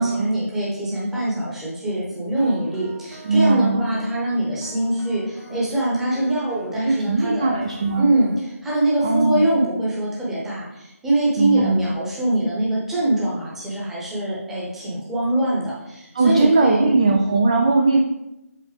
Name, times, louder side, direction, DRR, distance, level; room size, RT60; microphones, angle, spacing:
voice 1, 0.0-7.5 8.0-16.9, right 1 dB, 5° right, -7 dB, 0.9 m, -23 dB
sound 1, 2.4-8.4, right 2 dB, 85° right, 1.5 m, -45 dB
voice 2, 3.2-3.8 6.8-8.1 9.0-9.4 11.4-11.8 16.1-18.0, right 3 dB, 25° right, 2 dB, 0.3 m, -19 dB
7.4 x 3.8 x 3.4 m, 0.93 s
figure-of-eight pair, 155°, 9 cm